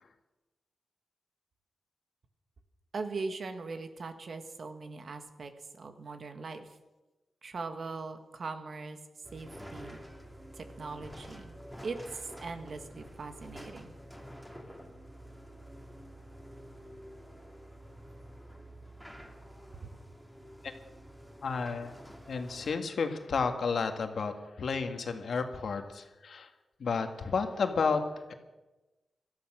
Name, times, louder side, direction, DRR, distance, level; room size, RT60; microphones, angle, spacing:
voice 1, 2.9-5.5 5.8-6.6 7.4-9.0 9.3-10.0 10.6-11.5 11.8-13.9 19.8-19.9, right 4 dB, 60° right, 7 dB, 1.7 m, -40 dB
sound 1, 9.2-22.8, equal, ahead, 2.5 m, -49 dB
voice 2, 21.4-21.9 22.3-26.5 26.8-28.0 28.3-28.4, left 5 dB, 75° left, 6 dB, 1.8 m, -31 dB
18.0 x 13.0 x 6.3 m, 1.1 s
cardioid pair, 80°, 0 cm